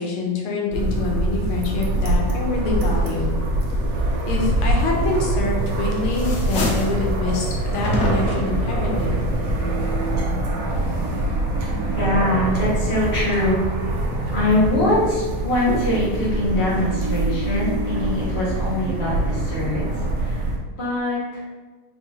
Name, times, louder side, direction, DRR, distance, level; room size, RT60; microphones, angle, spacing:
voice 1, 0.0-3.4 4.3-9.1, left 3 dB, 90° left, -1 dB, 1.6 m, -26 dB
sound 1, 0.7-20.6, right 1 dB, 65° right, 0.8 m, -24 dB
sound 2, 5.3-5.7 6.0-7.0 7.8-8.5, left 1 dB, 70° left, 0.8 m, -26 dB
voice 2, 11.0-11.4 12.0-13.6 14.3-21.4, left 1 dB, 35° left, -8 dB, 1.3 m, -23 dB
4.5 x 3.0 x 2.8 m, 1.3 s
omnidirectional pair, 2.3 m